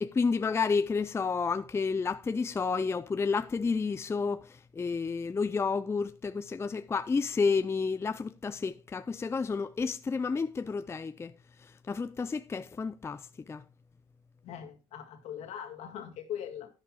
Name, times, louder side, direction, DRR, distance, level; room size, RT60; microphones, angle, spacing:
voice 1, 0.0-11.3 11.9-13.6, left 4 dB, 20° left, 0.4 m, -30 dB
voice 2, 14.4-16.7, left 9 dB, 70° left, 1.9 m, -41 dB
11.0 x 10.5 x 2.3 m
supercardioid pair, 70°, 12 cm